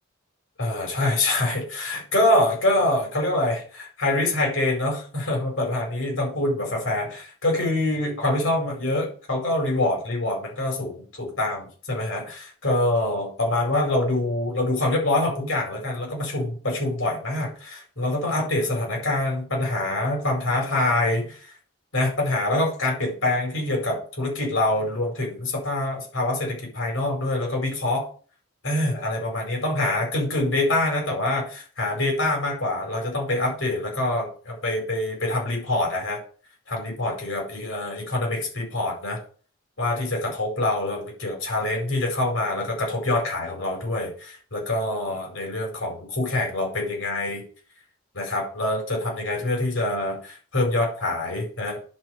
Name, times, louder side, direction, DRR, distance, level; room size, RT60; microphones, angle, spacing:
voice 1, 0.6-21.5 21.9-28.1 28.6-36.2 36.7-39.2 39.8-47.4 48.1-51.8, left 1 dB, 75° left, 0 dB, 4.8 m, -25 dB
10.5 x 4.7 x 6.5 m, 0.41 s
head